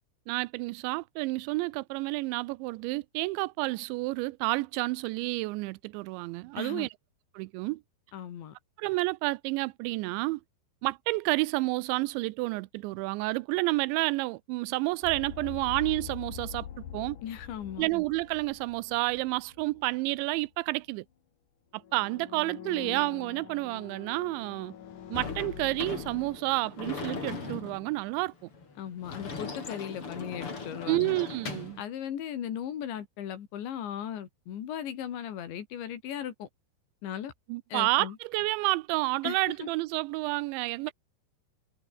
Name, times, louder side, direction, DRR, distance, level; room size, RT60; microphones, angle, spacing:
voice 1, 0.3-6.9 7.3-7.8 8.8-10.4 10.8-16.7 16.9-17.2 17.8-21.1 21.7-24.7 25.1-28.5 30.9-31.8 37.5-40.9, right 22 dB, 90° right, 2.9 m, -30 dB
voice 2, 6.6-6.9 8.1-8.5 17.2-17.9 28.8-31.2 31.8-36.5 37.0-37.3 37.7-38.2 39.2-39.7, left 9 dB, 75° left, 5.0 m, -37 dB
sound 1, 15.0-19.9 20.1-20.4 21.8-26.4, left 9 dB, 50° left, 3.1 m, -44 dB
Sliding door / Slam, 25.1-31.8, left 4 dB, 30° left, 4.6 m, -39 dB
omnidirectional pair, 5.2 m